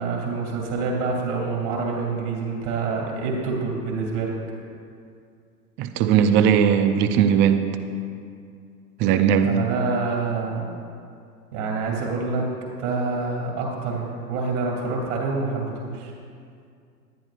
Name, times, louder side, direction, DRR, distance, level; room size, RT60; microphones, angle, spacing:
voice 1, 0.0-4.3 9.4-10.7 11.5-12.5 12.8-16.1, right 4 dB, 60° right, -3 dB, 2.8 m, -27 dB
voice 2, 5.8-7.8 9.0-9.6, right 8 dB, 25° right, 8 dB, 0.5 m, -19 dB
19.5 x 10.5 x 2.5 m, 2.3 s
hypercardioid pair, 110°, 46 cm